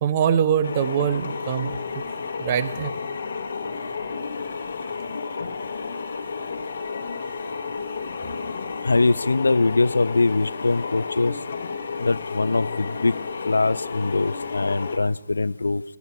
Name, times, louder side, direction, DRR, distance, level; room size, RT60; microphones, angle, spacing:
voice 1, 0.0-2.0 2.4-3.0, right 8 dB, 30° right, 13 dB, 0.6 m, -23 dB
sound 1, 0.6-15.0, left 5 dB, 50° left, 1.1 m, -32 dB
voice 2, 8.8-11.3 12.0-13.1 13.5-15.8, left 3 dB, 70° left, 20 dB, 0.3 m, -22 dB
14.0 x 9.4 x 5.7 m, 1.2 s
figure-of-eight pair, 145°, 0 cm